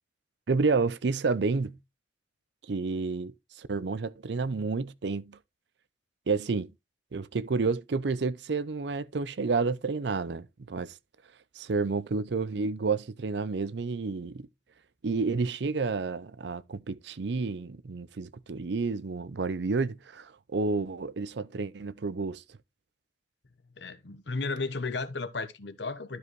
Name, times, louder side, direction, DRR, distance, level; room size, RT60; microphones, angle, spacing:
voice 1, 0.5-1.8 2.7-5.4 6.3-6.7 7.1-10.9 11.6-14.5 15.0-22.4, right 4 dB, 65° right, 0.5 m, -30 dB
voice 2, 23.8-26.2, left 3 dB, 65° left, 0.9 m, -34 dB
12.5 x 4.8 x 3.1 m
head